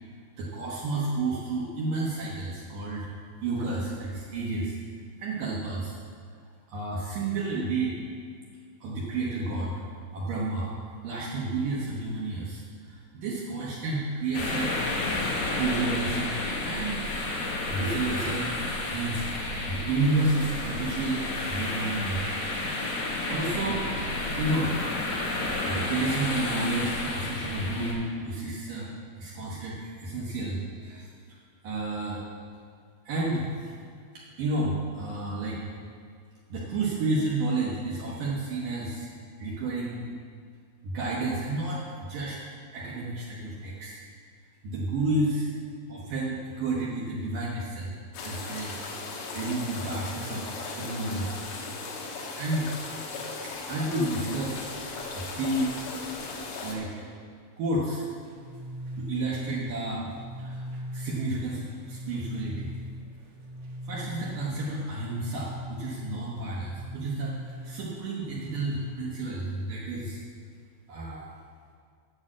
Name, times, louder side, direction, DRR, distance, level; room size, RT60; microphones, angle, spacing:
voice 1, 0.4-3.1 3.4-4.8 5.2-6.0 6.7-8.0 8.8-9.8 10.1-10.7 11.0-14.8 15.6-17.1 17.4-18.6 18.9-22.2 23.3-23.8 24.4-24.7 25.4-28.9 29.2-31.1 31.6-32.2 33.1-33.5 34.1-35.6 36.5-39.1 39.4-40.1 40.8-42.4 42.7-44.0 44.6-45.5 45.9-48.8 49.3-50.5 50.8-51.7 52.4-52.7 53.4-54.8 55.1-55.9 56.2-57.1 57.6-58.0 59.0-60.1 60.4-60.6 60.9-62.7 63.9-70.2 70.9-71.3, right 2 dB, 85° right, -5 dB, 1.9 m, -31 dB
sound 1, 14.3-27.9, left 2 dB, 65° left, 2.9 m, -31 dB
sound 2, 48.1-56.8, left 3 dB, 80° left, 3.8 m, -37 dB
Montbell (Bonshō) von Japan, 58.2-69.2, equal, 65° right, 2.8 m, -40 dB
8.6 x 6.6 x 7.4 m, 2.1 s
omnidirectional pair, 5.7 m